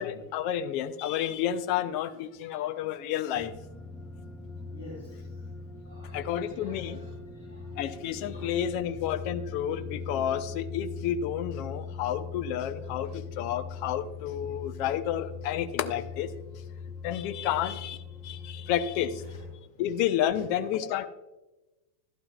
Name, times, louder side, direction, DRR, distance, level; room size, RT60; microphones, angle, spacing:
voice 1, 0.0-3.5 6.1-7.0 7.8-16.3 17.0-18.0 18.2-19.2 19.8-21.1, left 10 dB, 45° left, 12 dB, 0.6 m, -30 dB
sound 1, 3.3-19.6, left 5 dB, 10° left, 1.0 m, -41 dB
voice 2, 4.7-5.5 5.8-7.8 8.3-8.5 13.0-13.1 17.5-17.6 19.2-19.3 20.2-20.4, left 2 dB, 70° left, -3 dB, 2.8 m, -50 dB
12.0 x 12.0 x 2.4 m, 1.1 s
figure-of-eight pair, 90°, 0 cm